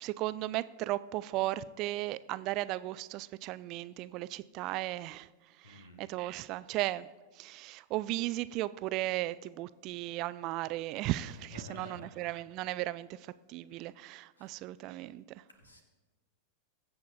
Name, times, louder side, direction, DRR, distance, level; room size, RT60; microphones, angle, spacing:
voice 1, 0.0-5.3 5.6-7.1 7.3-15.4, right 16 dB, 40° right, 17 dB, 0.3 m, -36 dB
voice 2, 5.6-6.0 11.5-12.1 14.4-14.5 15.6-15.8, left 2 dB, 75° left, 5 dB, 1.6 m, -49 dB
21.5 x 7.9 x 2.7 m, 1.2 s
figure-of-eight pair, 90°, 0 cm